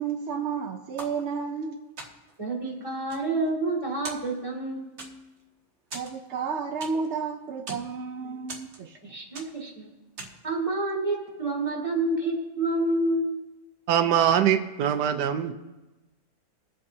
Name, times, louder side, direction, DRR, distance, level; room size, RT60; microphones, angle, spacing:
voice 1, 0.0-1.8 5.9-9.0, right 5 dB, 60° right, 4 dB, 0.7 m, -31 dB
sound 1, 1.0-1.6 2.0-2.4 2.9-3.8 4.0-4.6 5.0-5.4 5.9-7.2 7.5-7.9 8.5-9.0 9.3-9.7 10.2-10.5, right 2 dB, 45° right, 1.5 m, -41 dB
voice 2, 2.4-5.1 9.0-9.9 10.4-13.4, right 2 dB, 20° right, -2 dB, 2.3 m, -28 dB
voice 3, 13.9-15.5, right 9 dB, 90° right, 8 dB, 1.3 m, -23 dB
22.0 x 7.8 x 2.7 m, 1.0 s
omnidirectional pair, 1.8 m